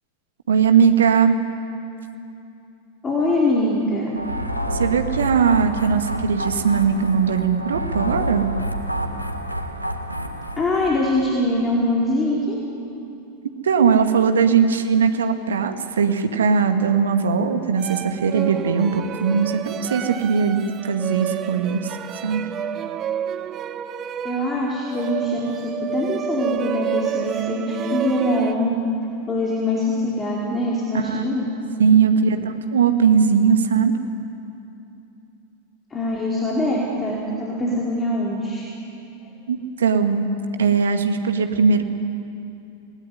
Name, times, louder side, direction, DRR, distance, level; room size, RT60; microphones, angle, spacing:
voice 1, 0.5-1.4 4.7-8.5 13.6-22.0 22.2-22.4 30.9-31.2 31.8-33.9 39.5-40.3 40.6-41.8, right 6 dB, 65° right, 6 dB, 2.2 m, -19 dB
voice 2, 3.0-4.1 10.6-12.6 24.2-28.7 29.3-31.5 35.9-38.6, left 1 dB, 15° left, -4 dB, 4.7 m, -23 dB
sound 1, 4.2-11.0, right 1 dB, 90° left, 1.9 m, -28 dB
sound 2, 17.8-28.5, right 10 dB, 30° right, 1.2 m, -30 dB
28.5 x 20.0 x 9.7 m, 2.7 s
figure-of-eight pair, 90°, 0 cm